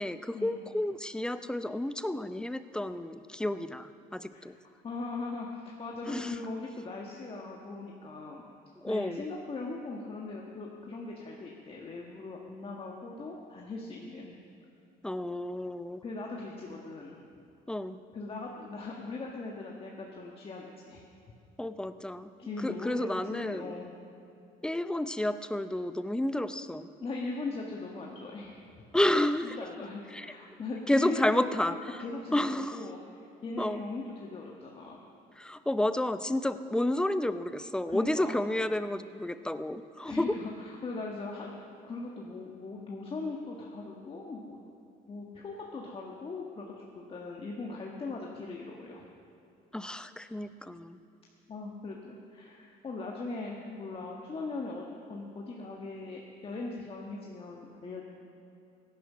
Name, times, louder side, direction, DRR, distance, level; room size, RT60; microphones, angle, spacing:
voice 1, 0.0-4.5 6.1-6.4 8.8-9.3 15.0-16.0 17.7-18.0 21.6-23.7 24.6-26.9 28.9-29.6 30.1-30.3 30.9-32.0 32.3-32.9 33.6-33.8 35.4-40.4 49.7-51.0, left 1 dB, 5° left, 12 dB, 0.5 m, -31 dB
voice 2, 4.8-8.4 8.8-14.4 16.0-17.2 18.1-21.0 22.4-23.9 27.0-28.8 29.4-31.7 32.0-32.5 32.7-35.0 37.9-38.3 40.0-44.6 45.1-49.0 51.5-58.0, left 3 dB, 35° left, -2 dB, 1.5 m, -40 dB
16.5 x 10.5 x 6.2 m, 2.8 s
cardioid pair, 110°, 17 cm